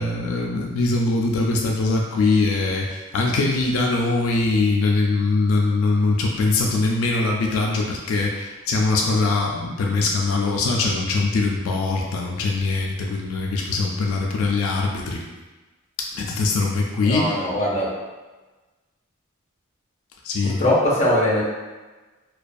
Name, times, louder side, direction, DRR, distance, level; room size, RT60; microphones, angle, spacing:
voice 1, 0.0-15.3 16.0-17.4 20.2-20.6, left 3 dB, 80° left, 0 dB, 0.3 m, -22 dB
voice 2, 17.0-17.9 20.6-21.4, left 1 dB, 30° left, -5 dB, 0.6 m, -20 dB
2.3 x 2.2 x 2.5 m, 1.2 s
head